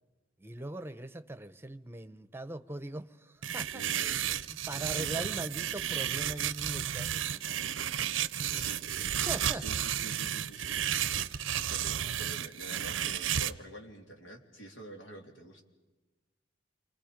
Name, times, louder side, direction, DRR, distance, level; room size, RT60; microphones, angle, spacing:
voice 1, 0.4-4.2 4.5-8.0 8.3-8.7 9.0-9.7, right 2 dB, 10° right, 0.8 m, -41 dB
sound 1, 3.4-13.5, right 10 dB, 90° right, 0.6 m, -33 dB
voice 2, 3.7-4.1 5.0-5.2 8.6-8.8 9.5-15.6, equal, 85° left, 3.2 m, -47 dB
29.0 x 25.0 x 5.1 m
head